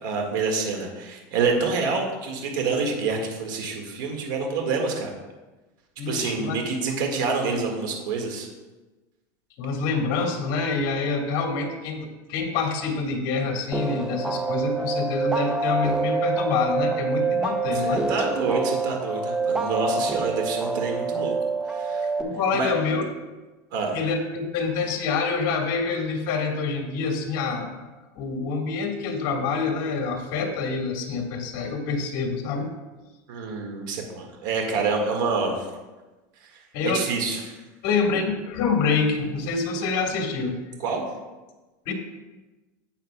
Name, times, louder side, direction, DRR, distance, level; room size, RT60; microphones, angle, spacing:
voice 1, 0.0-5.1 6.1-8.5 17.8-21.3 21.7-22.1 22.5-22.7 23.7-24.0 33.3-35.5 36.8-37.4 40.8-41.0, right 4 dB, 75° right, 1 dB, 1.8 m, -27 dB
voice 2, 6.0-6.6 9.6-18.0 22.2-23.0 23.9-27.8 28.2-32.7 36.7-37.0 37.8-40.6 41.9-42.0, left 4 dB, 55° left, 2 dB, 1.8 m, -26 dB
sound 1, 13.7-22.2, right 3 dB, 5° right, 0.4 m, -26 dB
12.0 x 8.1 x 2.3 m, 1.2 s
supercardioid pair, 145°, 10 cm